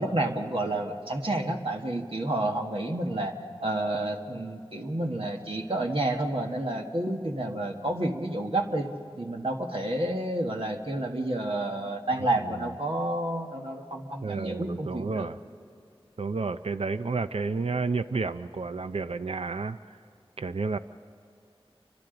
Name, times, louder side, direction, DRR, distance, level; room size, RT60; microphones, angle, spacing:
voice 1, 0.0-15.3, right 1 dB, 65° right, 1 dB, 1.6 m, -30 dB
voice 2, 12.2-12.6 14.2-15.4 16.2-20.0 20.4-20.8, right 4 dB, 85° right, 11 dB, 0.5 m, -31 dB
29.5 x 24.5 x 3.9 m, 2.6 s
wide cardioid pair, 40°, 10 cm